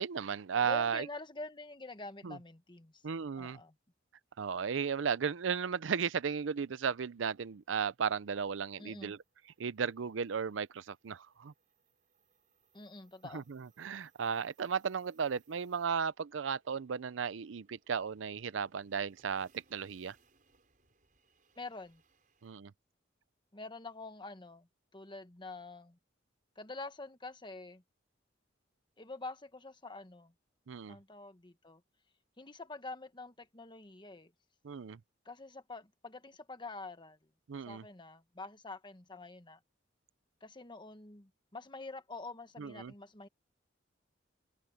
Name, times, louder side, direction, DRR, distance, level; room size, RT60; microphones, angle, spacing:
voice 1, 0.0-1.1 2.2-2.4 3.0-3.6 4.4-9.2 9.6-11.5 13.3-20.2 22.4-22.7 30.7-31.0 34.6-35.0 37.5-37.8 42.6-42.9, right 6 dB, 85° right, 0.5 m, -35 dB
voice 2, 0.6-3.0 3.4-3.7 8.8-9.1 12.7-13.4 21.5-22.0 23.5-24.7 24.9-26.0 26.5-27.8 29.0-30.3 30.9-31.8 32.4-34.3 35.2-37.2 37.7-39.6 40.4-43.3, left 3 dB, 25° left, 1.4 m, -46 dB
sound 1, 6.1-22.5, right 5 dB, 45° right, 5.3 m, -73 dB
head